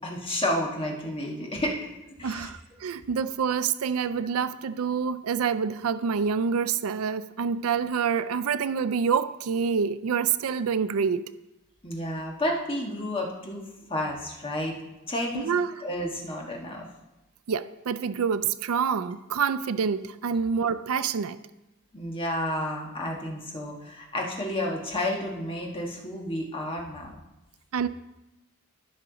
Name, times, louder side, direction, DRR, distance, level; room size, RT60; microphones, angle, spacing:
voice 1, 0.0-1.9 2.2-2.5 11.8-13.6 13.9-14.8 15.1-16.9 21.9-27.1, left 1 dB, 25° left, 1.4 m, -31 dB
voice 2, 2.2-11.3 15.3-15.8 17.5-21.4 27.7-27.9, right 6 dB, 75° right, 0.4 m, -27 dB
15.0 x 5.7 x 4.0 m
head